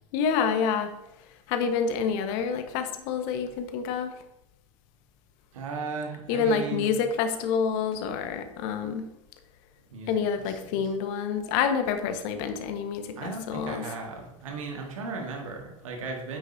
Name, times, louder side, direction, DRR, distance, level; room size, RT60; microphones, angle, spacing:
voice 1, 0.1-0.9 1.5-4.1 6.3-9.1 10.1-13.8, left 6 dB, 50° left, 7 dB, 1.3 m, -27 dB
voice 2, 5.5-6.9 9.9-10.2 10.5-10.9 13.2-16.4, right 4 dB, 70° right, 1 dB, 1.7 m, -36 dB
9.4 x 8.8 x 2.7 m, 0.87 s
figure-of-eight pair, 85°, 18 cm